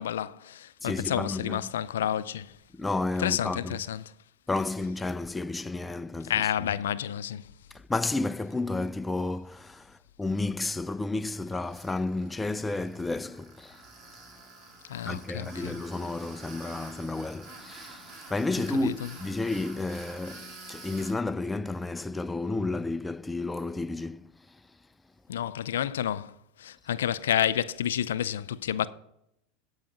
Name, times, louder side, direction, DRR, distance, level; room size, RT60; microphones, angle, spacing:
voice 1, 0.0-2.5 3.2-4.0 6.3-7.4 14.9-15.8 18.8-18.9 25.3-26.3 26.6-28.9, left 10 dB, 80° left, 0.4 m, -30 dB
voice 2, 0.8-1.7 2.7-3.8 4.5-6.7 7.7-13.9 15.0-24.6, left 2 dB, 10° left, 0.3 m, -32 dB
Tools, 11.6-21.1, right 2 dB, 45° right, 3.1 m, -48 dB
12.5 x 4.8 x 5.8 m
hypercardioid pair, 90°, 0 cm